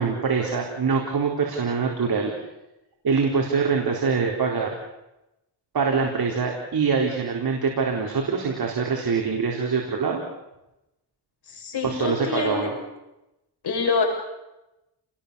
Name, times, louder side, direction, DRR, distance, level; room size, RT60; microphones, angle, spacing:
voice 1, 0.0-2.3 3.0-4.7 5.7-10.2 11.8-12.7, right 5 dB, 60° right, 0 dB, 4.2 m, -24 dB
voice 2, 11.5-12.7 13.6-14.0, left 5 dB, 65° left, 1 dB, 6.7 m, -26 dB
30.0 x 20.5 x 7.0 m, 0.93 s
cardioid pair, 100°, 42 cm